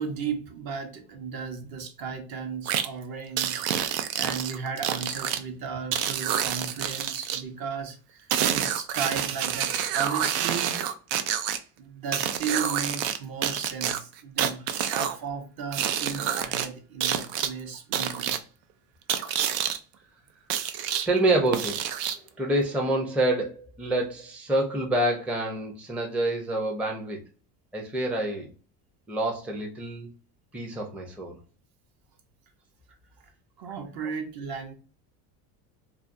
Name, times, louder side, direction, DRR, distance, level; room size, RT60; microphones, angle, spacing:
voice 1, 0.0-10.7 11.8-18.4 33.6-34.7, right 6 dB, 50° right, 0.8 m, -35 dB
sound 1, 2.7-2.9 3.4-5.4 5.9-7.4 8.3-11.6 12.1-13.2 13.4-15.2 15.7-16.7 17.0-17.5 17.9-18.4 19.1-19.8 20.5-21.1 21.5-22.3, right 9 dB, 80° right, 0.6 m, -28 dB
voice 2, 21.1-21.8 22.4-27.2 27.7-28.5 29.1-30.1 30.5-31.4, right 1 dB, 5° right, 0.5 m, -27 dB
2.5 x 2.2 x 2.4 m
supercardioid pair, 90°, 48 cm